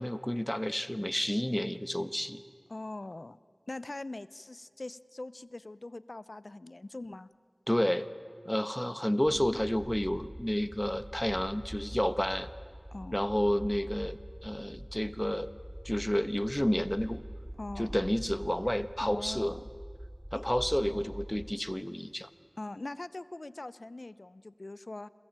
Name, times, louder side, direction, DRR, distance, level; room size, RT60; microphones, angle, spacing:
voice 1, 0.0-2.4 7.7-8.1 8.4-12.5 13.1-15.5 15.8-17.2 17.8-19.5 20.3-22.3, equal, 15° left, 13 dB, 1.2 m, -30 dB
voice 2, 2.7-3.4 3.7-7.3 9.0-9.6 12.9-13.2 17.6-18.0 19.0-19.6 20.3-20.5 22.6-25.1, left 2 dB, 70° left, 17 dB, 0.7 m, -42 dB
sound 1, 9.2-21.5, equal, 10° right, 0.7 m, -45 dB
29.0 x 22.5 x 8.9 m, 2.1 s
wide cardioid pair, 40°, 0 cm